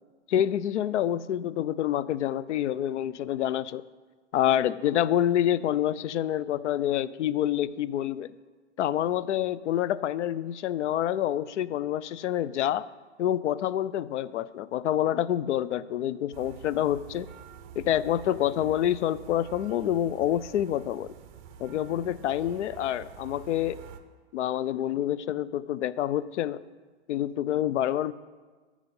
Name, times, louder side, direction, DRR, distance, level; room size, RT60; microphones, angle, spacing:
voice 1, 0.3-3.8 4.3-8.3 8.8-12.9 13.2-17.3 17.8-21.1 21.6-23.8 24.3-26.6 27.1-28.1, left 11 dB, 85° left, 17 dB, 0.5 m, -27 dB
sound 1, 16.3-24.0, right 8 dB, 30° right, 0.7 m, -47 dB
14.5 x 5.0 x 5.4 m, 1.4 s
hypercardioid pair, 150°, 35 cm